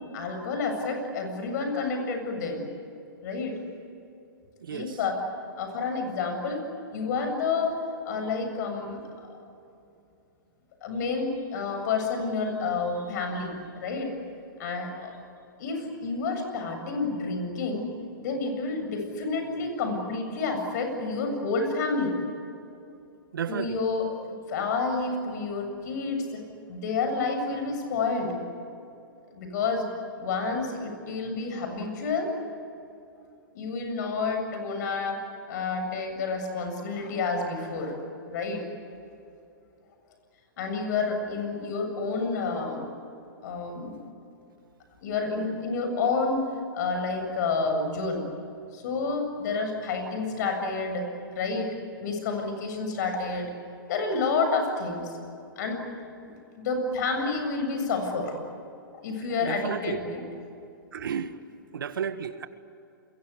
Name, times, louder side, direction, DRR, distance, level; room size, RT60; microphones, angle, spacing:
voice 1, 0.1-2.7 3.2-3.6 4.7-5.2 5.6-6.6 6.9-7.7 8.0-9.0 10.8-14.1 14.6-15.1 15.6-17.9 18.2-22.2 23.5-24.1 24.5-26.4 26.7-28.4 29.3-29.9 30.2-32.3 33.5-35.2 35.5-38.0 38.3-38.6 40.6-42.9 43.4-44.0 45.0-46.5 46.7-48.3 48.7-51.1 51.3-51.7 52.0-53.5 53.9-55.1 55.6-55.8 56.2-58.4 59.0-60.2, left 4 dB, 55° left, 5 dB, 7.7 m, -29 dB
voice 2, 4.6-5.0 23.3-23.8 59.4-60.0 60.9-61.3 61.7-62.5, right 7 dB, 75° right, 11 dB, 1.7 m, -32 dB
29.5 x 23.0 x 8.5 m, 2.6 s
hypercardioid pair, 130°, 11 cm